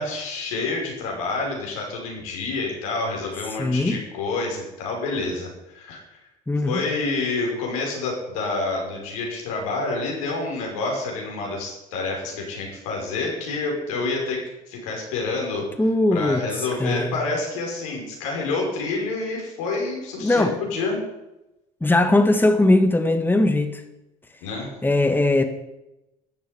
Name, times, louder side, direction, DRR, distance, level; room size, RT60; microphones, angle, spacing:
voice 1, 0.0-6.2 6.7-15.7 16.1-21.0 24.4-24.7, left 3 dB, 85° left, -1 dB, 5.9 m, -28 dB
voice 2, 3.6-4.0 6.5-6.8 15.8-16.4 16.8-17.1 20.2-20.5 21.8-23.8 24.8-25.4, left 2 dB, 10° left, 7 dB, 1.8 m, -19 dB
14.0 x 9.4 x 8.4 m, 0.92 s
supercardioid pair, 75°, 17 cm